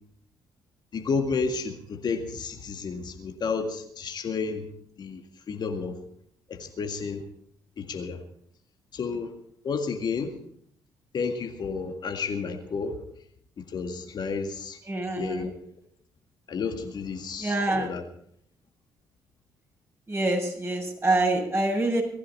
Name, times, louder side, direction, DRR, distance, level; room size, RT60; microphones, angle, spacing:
voice 1, 0.9-4.7 5.0-5.2 5.5-6.0 6.5-7.2 7.8-8.2 8.9-9.3 9.6-10.4 11.1-13.0 13.6-14.8 15.2-15.5 16.5-18.0, left 5 dB, 50° left, 4 dB, 2.0 m, -31 dB
voice 2, 14.9-15.5 17.4-17.9 20.1-22.0, right 2 dB, 30° right, 1 dB, 7.5 m, -26 dB
19.0 x 15.0 x 4.2 m, 0.67 s
figure-of-eight pair, 45°, 9 cm